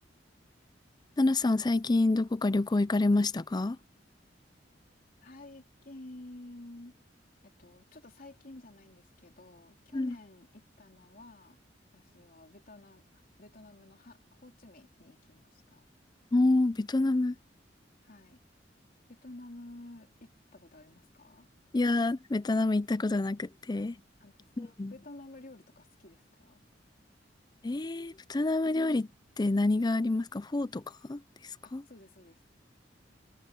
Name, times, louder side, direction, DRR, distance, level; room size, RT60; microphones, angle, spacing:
voice 1, 1.2-3.8 9.9-10.1 16.3-17.4 21.7-24.0 24.6-24.9 27.6-29.1 29.4-30.8 31.1-31.2 31.7-31.8, left 2 dB, 25° left, 0.5 m, -27 dB
voice 2, 5.2-7.0 7.4-11.6 11.9-15.8 18.0-18.4 19.1-21.5 23.8-23.9 24.2-26.6 31.6-32.4, left 2 dB, 50° left, 3.3 m, -51 dB
head